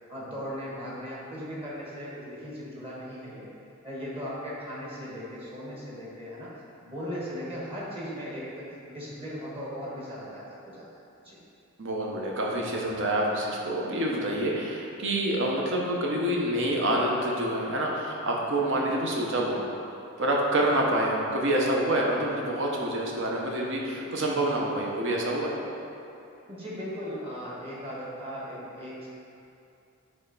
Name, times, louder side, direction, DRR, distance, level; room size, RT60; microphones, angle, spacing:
voice 1, 0.1-3.5 3.8-6.6 6.8-10.8 11.2-11.4 18.7-18.8 23.9-24.3 26.5-29.1, equal, 25° right, -6 dB, 1.4 m, -38 dB
voice 2, 11.8-19.7 20.2-25.6, right 1 dB, 60° right, -2 dB, 1.0 m, -27 dB
9.8 x 3.4 x 4.1 m, 2.7 s
head